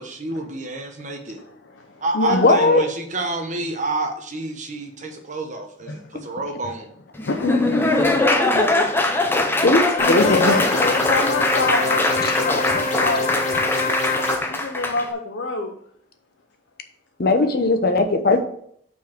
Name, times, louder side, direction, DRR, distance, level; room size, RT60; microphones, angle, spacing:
voice 1, 0.0-1.4 2.0-6.9, right 2 dB, 40° right, 3 dB, 1.1 m, -29 dB
voice 2, 1.4-2.5 5.9-6.3 6.6-6.8 7.2-7.6 7.9-8.1 8.4-9.5 10.0-13.5 14.5-15.7, left 3 dB, 80° left, 2 dB, 0.8 m, -27 dB
voice 3, 2.3-2.9 9.6-10.6 12.2-12.4 17.2-18.4, left 2 dB, 55° left, 6 dB, 0.8 m, -18 dB
Laughter / Applause, 7.2-15.1, left 2 dB, 10° left, 0.6 m, -21 dB
sound 1, 10.0-14.4, left 3 dB, 40° left, 1.3 m, -25 dB
5.6 x 4.6 x 6.0 m, 0.66 s
head